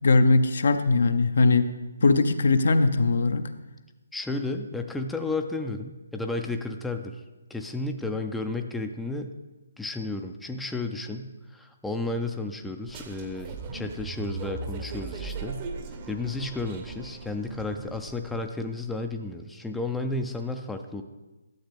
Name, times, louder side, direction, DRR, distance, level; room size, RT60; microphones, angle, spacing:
voice 1, 0.0-1.7 2.0-3.4, left 3 dB, 60° left, 10 dB, 0.6 m, -20 dB
voice 2, 4.1-7.2 7.5-9.4 9.8-15.7 16.1-21.0, left 2 dB, 5° left, 5 dB, 0.4 m, -32 dB
sound 1, 12.9-18.5, right 4 dB, 30° right, 0.9 m, -38 dB
12.0 x 7.2 x 3.4 m, 1.1 s
figure-of-eight pair, 140°, 0 cm